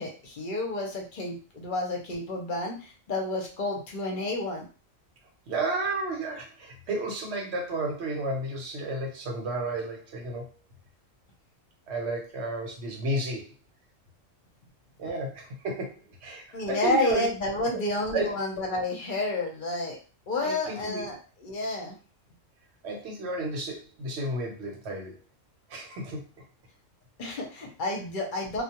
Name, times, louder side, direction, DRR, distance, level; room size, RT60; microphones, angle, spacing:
voice 1, 0.0-4.6 16.5-20.0 20.3-22.0 27.2-28.6, left 2 dB, 50° left, 0 dB, 0.7 m, -30 dB
voice 2, 5.5-10.5 11.9-13.5 15.0-17.3 17.7-17.8 18.1-18.3 20.4-21.0 22.8-25.2 25.7-26.2, right 2 dB, 60° right, 0 dB, 0.9 m, -32 dB
2.3 x 2.1 x 2.8 m, 0.35 s
omnidirectional pair, 1.3 m